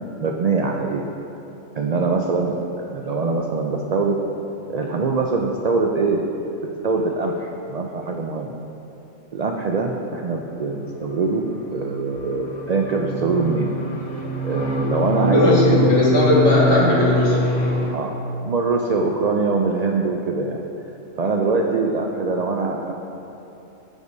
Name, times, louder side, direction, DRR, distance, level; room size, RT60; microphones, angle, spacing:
voice 1, 0.2-1.0 1.8-4.2 4.7-8.6 9.3-13.7 14.4-15.9 16.3-16.8 17.9-18.1 18.4-20.6 21.2-22.9, right 4 dB, 80° right, 1 dB, 0.3 m, -23 dB
sound 1, 10.9-17.9, left 2 dB, 40° left, 0.9 m, -24 dB
voice 2, 15.2-17.5, left 1 dB, 70° left, -7 dB, 2.2 m, -17 dB
14.5 x 4.9 x 2.7 m, 3.0 s
omnidirectional pair, 1.3 m